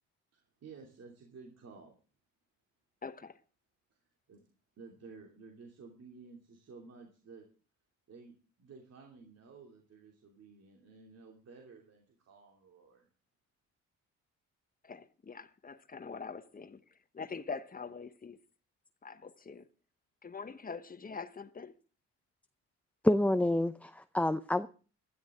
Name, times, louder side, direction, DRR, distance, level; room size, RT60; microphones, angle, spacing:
voice 1, 0.3-1.9 4.3-4.4 4.8-7.5 8.1-13.1, right 4 dB, 55° right, 2.9 m, -53 dB
voice 2, 3.0-3.4 14.8-16.8 17.1-18.4 19.0-19.7 20.2-21.8, left 5 dB, 30° left, 1.1 m, -44 dB
voice 3, 23.0-24.7, left 1 dB, 5° left, 0.5 m, -28 dB
16.0 x 12.5 x 3.7 m
cardioid pair, 90°, 30 cm